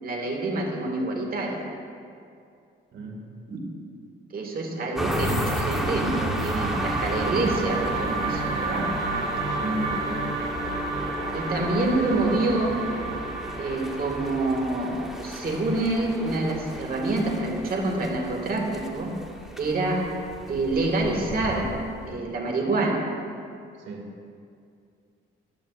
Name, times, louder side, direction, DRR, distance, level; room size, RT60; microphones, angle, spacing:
voice 1, 0.0-1.7 3.5-3.6 4.3-8.9 11.3-12.8 13.6-19.1 19.6-20.0 20.5-21.7 22.1-23.0, right 2 dB, 50° right, 1 dB, 1.9 m, -27 dB
voice 2, 2.9-3.2 9.5-10.3 23.8-24.1, right 1 dB, 70° right, 0 dB, 2.1 m, -34 dB
sound 1, 5.0-22.2, equal, ahead, 1.1 m, -34 dB
sound 2, 5.5-15.7, right 3 dB, 90° right, 1.5 m, -32 dB
13.5 x 11.0 x 2.5 m, 2.4 s
cardioid pair, 90°, 20 cm